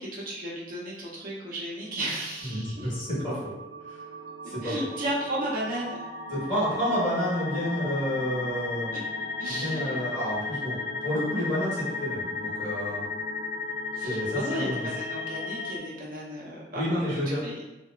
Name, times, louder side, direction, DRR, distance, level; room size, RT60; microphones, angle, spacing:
voice 1, 0.0-2.9 4.6-6.0 8.9-9.0 9.4-10.0 13.9-17.6, right 1 dB, 50° right, -5 dB, 0.7 m, -34 dB
voice 2, 2.4-3.4 3.9-4.0 4.4-4.7 6.3-8.9 9.5-13.1 14.0-14.9 16.7-17.4, equal, 25° left, -10 dB, 1.4 m, -30 dB
sound 1, 2.5-15.8, left 3 dB, 80° left, 0.5 m, -35 dB
2.8 x 2.1 x 2.3 m, 0.99 s
head